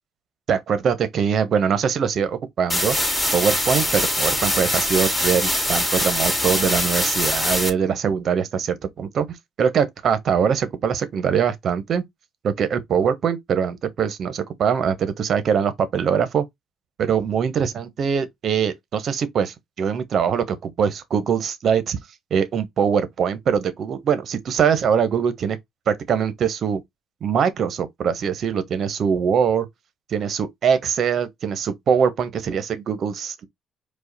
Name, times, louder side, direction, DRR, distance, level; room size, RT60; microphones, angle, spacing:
voice 1, 0.5-3.0 3.3-12.0 12.4-16.4 17.0-22.0 22.3-25.6 25.9-26.8 27.2-29.7 30.1-33.5, right 7 dB, 60° right, 1.0 m, -22 dB
sound 1, 2.7-7.7, left 1 dB, 10° left, 2.1 m, -22 dB
4.8 x 2.4 x 4.0 m
supercardioid pair, 65°, 0 cm